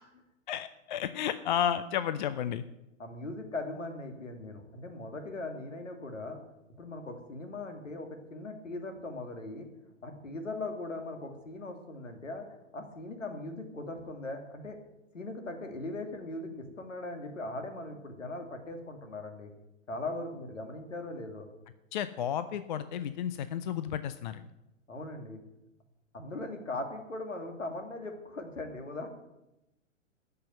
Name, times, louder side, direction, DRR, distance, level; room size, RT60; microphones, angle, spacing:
voice 1, 0.5-2.6 21.9-24.5, left 9 dB, 35° left, 14 dB, 0.5 m, -32 dB
voice 2, 3.0-6.4 6.8-9.7 10.0-12.4 12.7-14.8 15.1-19.5 19.9-21.5 24.9-25.4 26.1-29.1, left 2 dB, 70° left, 5 dB, 2.5 m, -39 dB
13.0 x 5.8 x 9.3 m, 0.93 s
figure-of-eight pair, 110°, 39 cm